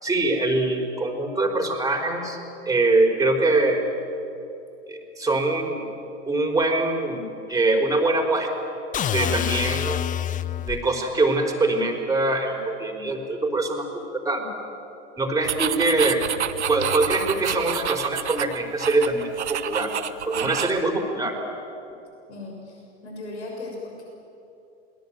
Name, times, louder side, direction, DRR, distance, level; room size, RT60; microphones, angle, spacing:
voice 1, 0.0-2.4 2.6-3.8 4.9-5.8 6.2-7.2 7.5-8.5 9.1-10.0 10.6-14.5 15.2-16.2 16.7-19.9 20.3-21.3, right 2 dB, 10° right, 1 dB, 4.9 m, -23 dB
sound 1, 8.9-10.9, left 10 dB, 25° left, 0.7 m, -26 dB
sound 2, 15.4-20.8, right 9 dB, 75° right, 1.2 m, -29 dB
voice 2, 22.3-24.0, left 2 dB, 75° left, 0 dB, 6.6 m, -37 dB
28.0 x 21.5 x 9.1 m, 2.8 s
figure-of-eight pair, 90°, 34 cm